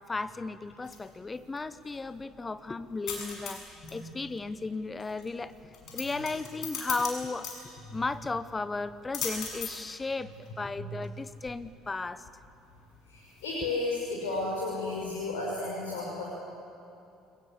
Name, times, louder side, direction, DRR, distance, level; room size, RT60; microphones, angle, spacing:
voice 1, 0.0-5.5 5.9-7.5 7.9-10.3 10.6-12.2, left 3 dB, 20° left, 15 dB, 1.1 m, -35 dB
sound 1, 0.6-15.4, left 6 dB, 50° left, 6.9 m, -42 dB
voice 2, 3.8-4.1 5.9-6.0 7.9-8.0 10.8-10.9 13.1-16.2, left 2 dB, 70° left, -4 dB, 6.1 m, -33 dB
29.0 x 22.0 x 8.6 m, 2.7 s
figure-of-eight pair, 55°, 0 cm